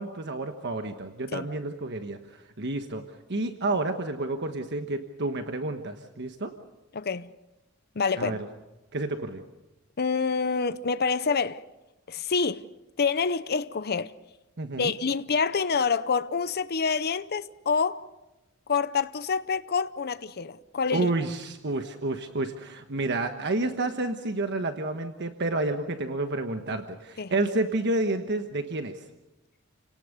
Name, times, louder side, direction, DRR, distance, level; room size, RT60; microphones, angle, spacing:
voice 1, 0.0-3.0 3.3-6.5 8.2-8.4 8.9-9.4 14.6-14.9 20.9-29.0, right 2 dB, 55° right, 1.3 m, -30 dB
voice 2, 6.9-7.3 8.0-8.4 10.0-11.6 12.1-12.7 13.0-14.1 14.8-18.0 18.7-21.1 27.2-27.3, left 5 dB, 50° left, 0.7 m, -27 dB
29.5 x 18.0 x 6.7 m
head